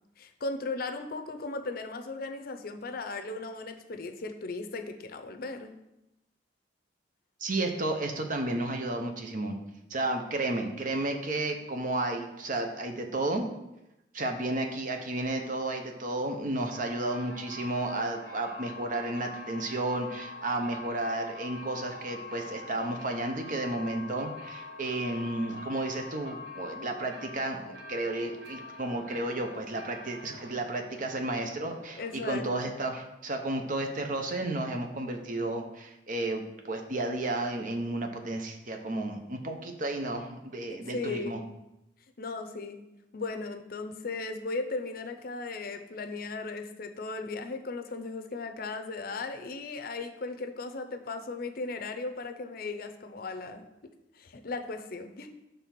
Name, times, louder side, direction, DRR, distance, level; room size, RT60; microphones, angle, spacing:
voice 1, 0.2-5.7 32.0-32.8 40.7-41.4 42.2-42.9 43.1-53.6 54.1-55.3, left 3 dB, 60° left, 7 dB, 0.6 m, -37 dB
voice 2, 7.4-9.6 9.9-13.5 14.1-41.4, right 2 dB, 50° right, 4 dB, 0.8 m, -32 dB
sound 1, 16.6-33.0, left 3 dB, 80° right, 1.4 m, -45 dB
6.7 x 3.4 x 5.9 m, 0.92 s
head